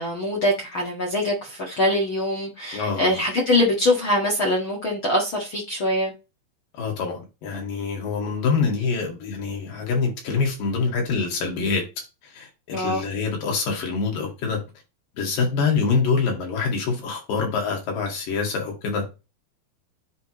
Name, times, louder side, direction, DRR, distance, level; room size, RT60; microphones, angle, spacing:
voice 1, 0.0-6.1 12.7-13.0, left 1 dB, 45° left, 1.9 m, -23 dB
voice 2, 2.7-3.1 6.7-11.8 12.4-14.6 15.2-19.1, left 5 dB, 65° left, 3.6 m, -25 dB
10.5 x 3.5 x 3.0 m
omnidirectional pair, 4.2 m